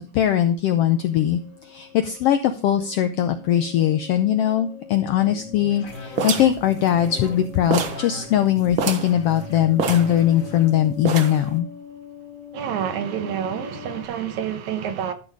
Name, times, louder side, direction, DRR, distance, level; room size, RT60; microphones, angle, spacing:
voice 1, 0.0-11.7, left 11 dB, 90° left, 1.3 m, -21 dB
sound 1, 0.8-14.1, left 5 dB, 70° left, 3.4 m, -43 dB
sound 2, 5.1-11.4, left 2 dB, 35° left, 1.6 m, -39 dB
sound 3, 6.2-7.4 7.7-8.1 8.4-8.5 8.7-9.2 9.8-10.6 11.0-11.5, right 6 dB, 55° right, 1.5 m, -26 dB
voice 2, 12.5-15.1, right 9 dB, 75° right, 2.3 m, -28 dB
12.0 x 6.3 x 4.8 m
omnidirectional pair, 3.5 m